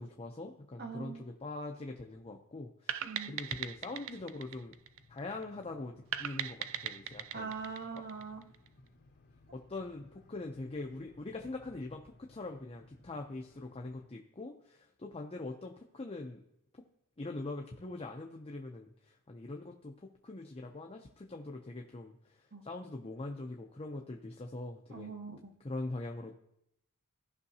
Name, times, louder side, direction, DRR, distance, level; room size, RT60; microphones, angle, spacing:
voice 1, 0.0-4.8 5.1-7.5 8.0-8.1 9.5-16.4 17.2-25.1 25.6-26.3, left 2 dB, 25° left, 1 dB, 0.6 m, -43 dB
voice 2, 0.8-1.2 3.0-3.3 7.3-8.4 22.5-22.7 24.9-25.5, right 5 dB, 45° right, 4 dB, 0.9 m, -42 dB
sound 1, 2.9-14.0, left 2 dB, 50° left, 2.1 m, -62 dB
sound 2, 2.9-5.4 6.1-8.7, right 9 dB, 60° right, 0.4 m, -39 dB
16.0 x 5.7 x 2.8 m, 0.78 s
head